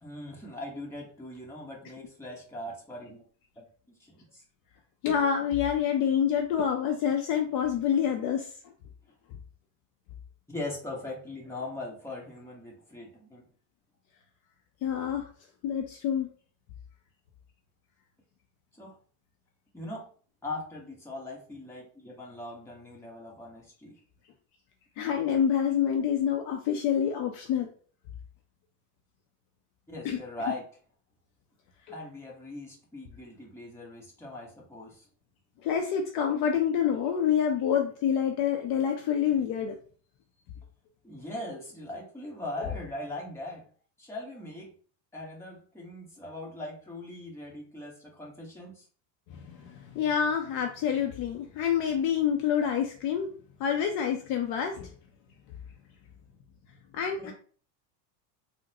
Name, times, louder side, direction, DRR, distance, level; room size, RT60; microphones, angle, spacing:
voice 1, 0.0-3.2 3.6-3.7 4.1-4.4 10.5-13.5 18.8-18.9 19.7-20.1 20.4-23.9 29.9-30.6 31.9-35.1 41.0-43.7 44.0-44.7 45.1-48.8 57.2-57.3, left 2 dB, 5° left, -3 dB, 1.0 m, -40 dB
voice 2, 5.0-8.5 14.8-15.3 15.6-16.3 25.0-27.7 30.0-30.2 31.9-32.0 35.6-39.7 49.3-53.3 53.6-54.9 56.9-57.3, left 8 dB, 45° left, 3 dB, 0.6 m, -27 dB
3.8 x 2.1 x 2.8 m, 0.43 s
supercardioid pair, 115°, 49 cm